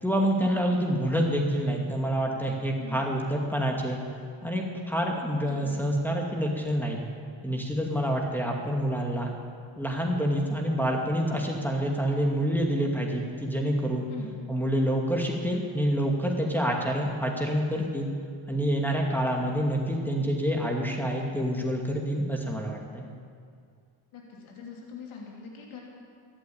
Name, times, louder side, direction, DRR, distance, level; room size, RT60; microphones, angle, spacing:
voice 1, 0.0-4.0 4.4-7.0 7.4-9.3 9.8-14.1 14.5-18.1 18.5-23.1, equal, 5° left, -1 dB, 2.3 m, -27 dB
voice 2, 5.4-5.8 14.1-14.3 24.1-25.8, left 5 dB, 75° left, -2 dB, 3.1 m, -42 dB
14.0 x 9.1 x 8.7 m, 2.2 s
cardioid pair, 75°, 48 cm